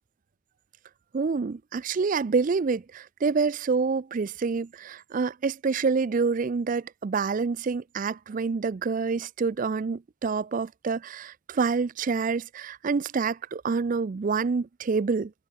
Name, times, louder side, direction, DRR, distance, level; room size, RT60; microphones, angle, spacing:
voice 1, 1.1-15.3, right 4 dB, 40° right, 0.4 m, -27 dB
head